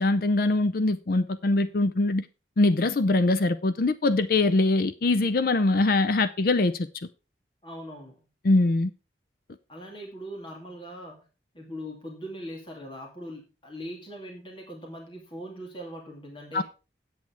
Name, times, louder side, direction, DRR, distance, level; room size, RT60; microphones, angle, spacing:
voice 1, 0.0-2.2 2.6-6.9 8.4-8.9 16.5-16.6, left 2 dB, 50° left, 13 dB, 0.5 m, -23 dB
voice 2, 7.6-8.3 9.7-11.2 11.5-16.6, equal, 30° left, 1 dB, 2.3 m, -40 dB
8.5 x 8.4 x 4.6 m, 0.32 s
head